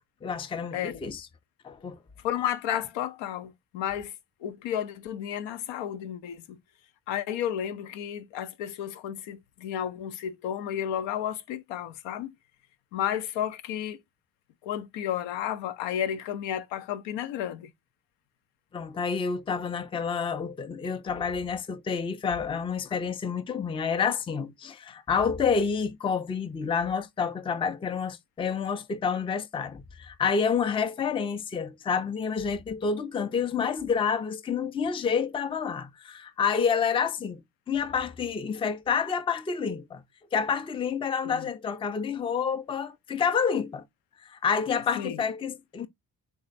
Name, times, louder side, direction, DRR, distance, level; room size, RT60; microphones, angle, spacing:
voice 1, 0.2-1.3 1.6-2.0 18.7-37.4 37.7-40.0 40.3-43.9 44.2-45.9, left 6 dB, 15° left, 0.3 m, -28 dB
voice 2, 2.2-4.1 4.4-6.6 7.1-12.3 12.9-14.0 14.6-17.7 41.2-41.5 45.0-45.2, left 10 dB, 80° left, 0.5 m, -32 dB
3.5 x 2.0 x 3.9 m
supercardioid pair, 50°, 44 cm